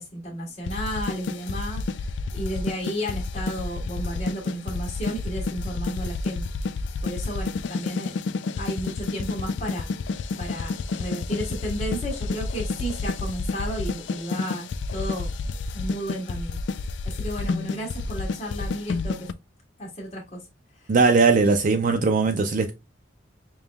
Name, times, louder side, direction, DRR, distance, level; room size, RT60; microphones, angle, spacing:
voice 1, 0.0-8.2 8.6-9.9 10.4-15.3 15.7-16.6 17.0-19.3 19.8-20.5 20.8-20.9, right 1 dB, 35° left, 1.4 m, -33 dB
sound 1, 0.6-19.3, left 3 dB, 65° left, 0.4 m, -30 dB
voice 2, 20.9-22.7, right 4 dB, 45° right, 0.4 m, -19 dB
5.3 x 3.0 x 2.2 m
head